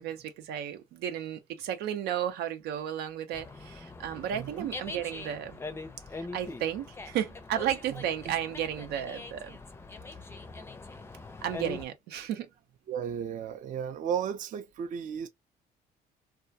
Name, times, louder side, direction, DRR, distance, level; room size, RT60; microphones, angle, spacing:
voice 1, 0.0-5.6 6.2-9.6 11.4-12.5, right 10 dB, 90° right, 0.7 m, -33 dB
Dog, 3.3-11.8, left 3 dB, 15° left, 0.5 m, -43 dB
voice 2, 4.3-4.7 7.9-8.0 12.9-15.3, right 8 dB, 50° right, 0.5 m, -34 dB
2.3 x 2.2 x 2.6 m
cardioid pair, 110°, 17 cm